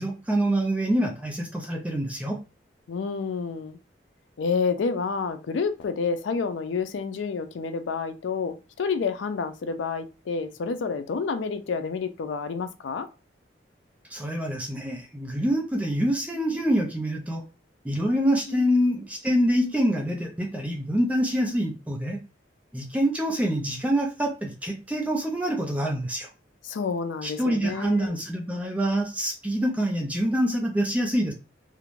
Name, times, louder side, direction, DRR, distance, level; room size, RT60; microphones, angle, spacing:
voice 1, 0.0-2.4 14.1-17.4 17.8-22.2 22.7-26.3 27.2-31.3, equal, 10° right, 0 dB, 0.4 m, -26 dB
voice 2, 2.9-3.8 4.4-13.1 18.5-18.6 19.6-19.7 26.6-28.1, left 5 dB, 80° left, 10 dB, 0.4 m, -29 dB
2.4 x 2.1 x 3.0 m, 0.30 s
head